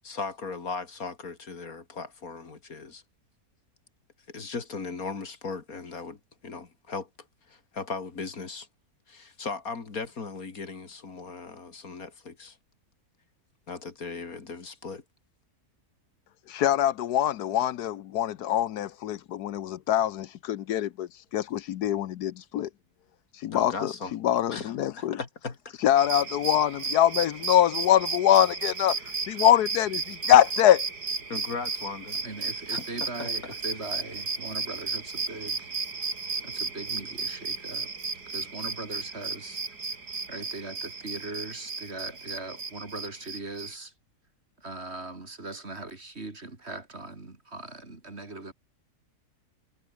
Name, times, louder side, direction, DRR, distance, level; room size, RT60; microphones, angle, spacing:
voice 1, 0.0-3.0 4.3-7.1 7.5-8.7 9.1-12.6 13.7-15.0 23.5-24.1 24.5-24.7 25.0-25.8 31.3-32.2 32.7-33.6, left 4 dB, 65° left, 2.9 m, -37 dB
voice 2, 16.5-22.7 23.3-25.2 25.8-30.9, left 11 dB, 80° left, 1.3 m, -24 dB
sound 1, 25.9-43.7, right 4 dB, 85° right, 3.6 m, -34 dB
voice 3, 32.2-35.7 36.4-37.9 38.3-39.6 40.3-43.9 44.6-48.5, right 2 dB, 40° right, 3.5 m, -40 dB
omnidirectional pair, 1.7 m